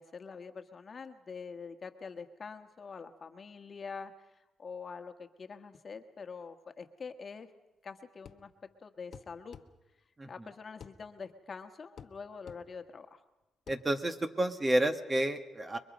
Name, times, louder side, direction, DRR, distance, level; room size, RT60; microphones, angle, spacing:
voice 1, 0.0-4.1 4.6-7.5 7.8-8.5 8.8-9.6 10.3-13.2, left 5 dB, 40° left, 6 dB, 1.5 m, -45 dB
sound 1, 8.2-8.5 9.1-9.7 10.8-11.0 12.0-12.2 12.5-12.6 13.7-13.8, left 7 dB, 55° left, 1.2 m, -49 dB
voice 2, 13.7-15.8, right 1 dB, 20° right, 7 dB, 1.6 m, -30 dB
30.0 x 22.5 x 5.3 m, 1.0 s
cardioid pair, 90°, 0 cm